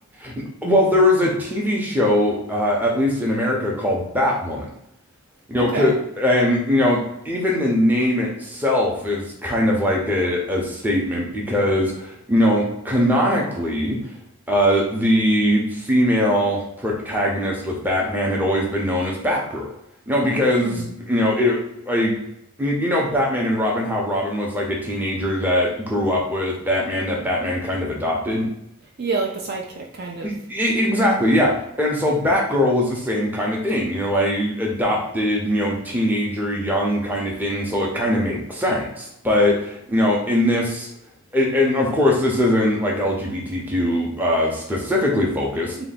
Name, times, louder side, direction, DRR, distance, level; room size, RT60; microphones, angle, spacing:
voice 1, 0.6-4.7 5.5-14.1 14.5-19.7 20.1-20.8 21.1-21.6 21.8-22.2 22.6-28.5 30.2-40.9 41.3-45.9, left 1 dB, 10° right, -2 dB, 0.7 m, -21 dB
voice 2, 5.6-5.9 20.6-20.9 29.0-30.3 45.8-45.9, right 3 dB, 45° right, 0 dB, 0.4 m, -28 dB
3.9 x 2.3 x 4.0 m, 0.78 s
head